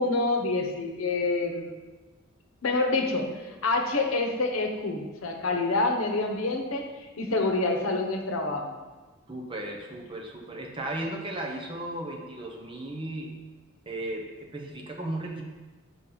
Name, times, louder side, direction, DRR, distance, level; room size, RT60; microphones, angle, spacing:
voice 1, 0.0-1.7 2.6-8.7, left 3 dB, 90° left, 3 dB, 0.8 m, -27 dB
voice 2, 9.3-13.3 13.9-15.4, right 1 dB, 25° right, 0 dB, 0.8 m, -35 dB
6.0 x 5.3 x 3.9 m, 1.3 s
head